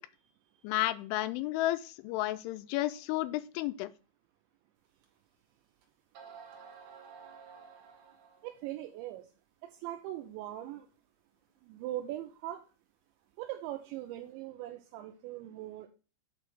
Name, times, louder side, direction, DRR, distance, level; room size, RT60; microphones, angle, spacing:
voice 1, 0.6-3.9, left 16 dB, 85° left, 13 dB, 2.8 m, -32 dB
sound 1, 5.0-5.1 5.8-5.9 6.1-8.6, right 6 dB, 65° right, 2.1 m, -52 dB
voice 2, 8.4-9.3 9.6-10.9 11.6-12.6 13.4-15.9, right 14 dB, 85° right, 5 dB, 2.7 m, -40 dB
8.2 x 3.2 x 6.1 m, 0.35 s
omnidirectional pair, 5.7 m